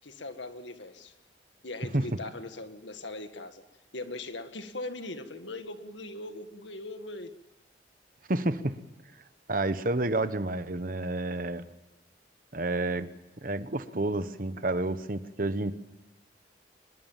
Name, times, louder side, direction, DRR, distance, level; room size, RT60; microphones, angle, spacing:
voice 1, 0.0-1.1 1.6-3.6 3.9-7.3, left 2 dB, 85° left, 8 dB, 1.9 m, -40 dB
voice 2, 8.3-8.8 9.5-11.7 12.5-13.1 13.4-15.7, right 2 dB, 50° right, 12 dB, 1.1 m, -29 dB
24.0 x 21.0 x 7.4 m, 1.0 s
head